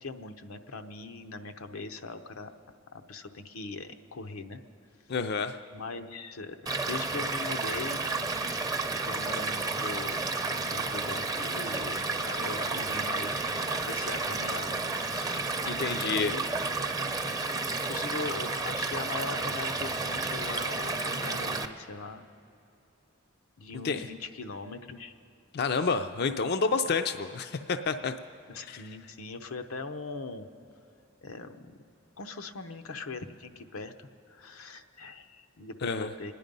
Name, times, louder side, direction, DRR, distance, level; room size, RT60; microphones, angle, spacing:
voice 1, 0.0-2.6 2.9-4.6 5.7-6.6 6.8-8.0 9.0-10.3 10.7-15.6 15.9-16.4 17.9-22.3 23.6-25.1 25.7-25.9 28.5-30.5 31.2-31.8 32.2-36.3, left 3 dB, 90° left, 7 dB, 0.8 m, -40 dB
voice 2, 5.1-5.6 15.7-16.3 23.8-24.1 25.5-28.1 28.7-28.8 35.8-36.1, left 4 dB, 50° left, 8 dB, 0.4 m, -29 dB
Stream / Liquid, 6.7-21.7, right 3 dB, 15° right, 0.6 m, -31 dB
26.0 x 10.0 x 5.3 m, 2.7 s
head